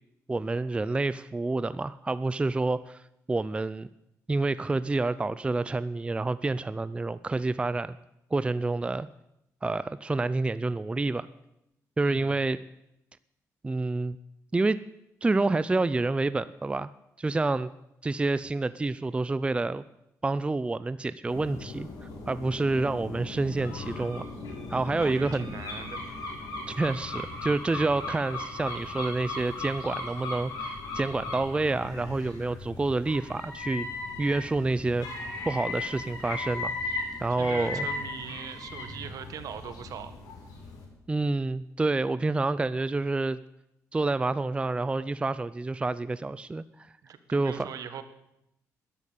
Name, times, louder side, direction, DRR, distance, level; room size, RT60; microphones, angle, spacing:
voice 1, 0.3-3.0 3.3-3.9 4.3-8.0 8.3-9.1 9.6-11.3 12.0-12.6 13.6-14.2 14.5-14.8 15.2-16.9 17.2-17.7 18.0-19.8 20.2-21.9 22.3-24.3 24.7-25.5 26.7-33.9 34.2-35.1 35.5-36.7 37.2-37.9 41.1-43.4 43.9-46.9 47.3-47.7, right 3 dB, 15° right, 15 dB, 0.5 m, -28 dB
voice 2, 12.0-12.3 25.0-26.0 26.2-26.4 37.4-40.2 47.0-48.0, right 8 dB, 70° right, 11 dB, 1.5 m, -41 dB
sound 1, 21.3-40.9, left 2 dB, 80° left, 5.4 m, -37 dB
13.0 x 11.0 x 8.4 m, 0.83 s
cardioid pair, 85°, 6 cm